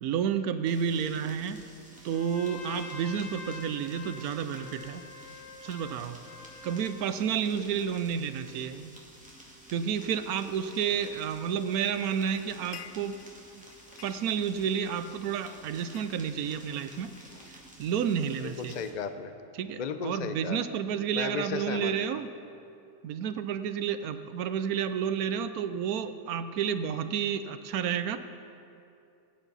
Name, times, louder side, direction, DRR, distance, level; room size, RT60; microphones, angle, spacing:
voice 1, 0.0-1.6 2.0-5.0 5.6-6.2 6.6-8.9 9.7-13.2 13.6-13.7 14.0-17.1 17.5-18.8 19.5-22.3 23.0-28.2, right 8 dB, 70° right, 11 dB, 1.0 m, -31 dB
sound 1, 0.6-18.9, right 1 dB, 5° right, 1.9 m, -52 dB
Trumpet, 2.1-7.1, left 3 dB, 50° left, 1.2 m, -46 dB
sound 2, 12.3-13.4 13.7-15.0 15.4-18.1, left 9 dB, 70° left, 0.7 m, -51 dB
voice 2, 18.4-19.3 19.8-20.6 21.1-21.9, left 6 dB, 85° left, 9 dB, 0.4 m, -34 dB
21.5 x 10.0 x 4.0 m, 2.6 s
omnidirectional pair, 1.7 m